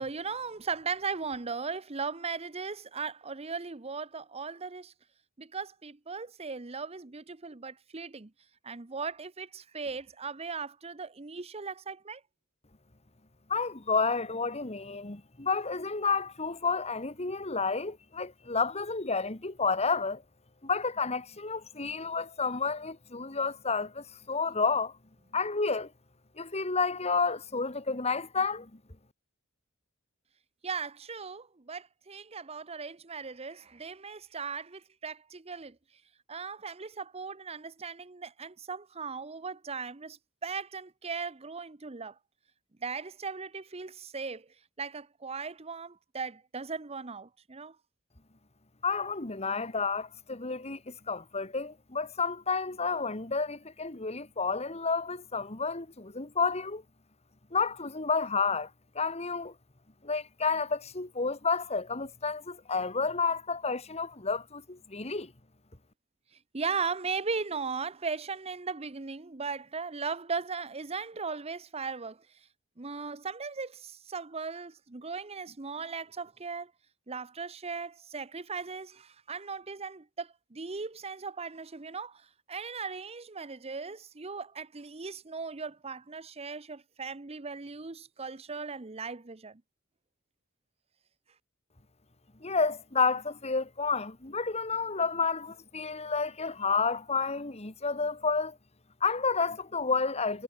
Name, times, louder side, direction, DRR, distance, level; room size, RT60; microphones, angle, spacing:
voice 1, 0.0-4.9 5.4-8.3 8.6-12.2 30.6-35.8 36.3-42.2 42.8-44.5 44.8-47.8 66.5-72.3 72.8-76.7 77.1-89.6, right 5 dB, 30° right, 0.8 m, -38 dB
voice 2, 13.5-20.2 20.6-24.9 25.3-25.9 26.4-28.7 48.8-56.8 57.5-58.7 59.0-59.5 60.0-65.3 92.4-98.6 99.0-100.4, left 4 dB, 30° left, 1.8 m, -30 dB
head